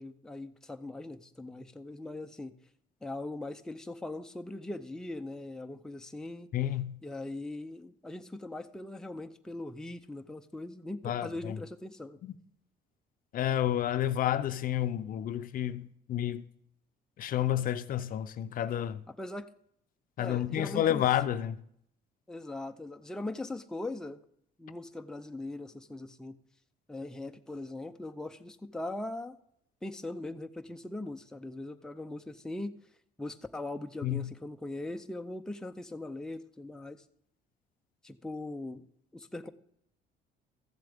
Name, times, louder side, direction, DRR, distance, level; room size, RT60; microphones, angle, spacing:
voice 1, 0.0-2.6 3.0-6.5 7.0-12.2 19.1-19.5 20.2-21.1 22.3-24.2 24.6-26.4 26.9-29.4 29.8-32.8 33.2-37.0 38.0-38.9 39.1-39.5, left 2 dB, 5° left, 0.6 m, -40 dB
voice 2, 6.5-7.0 11.0-11.6 12.2-12.3 13.3-16.4 17.2-19.0 20.2-21.6 34.0-34.3, left 11 dB, 55° left, 0.6 m, -30 dB
14.0 x 7.5 x 3.5 m
cardioid pair, 110°, 17 cm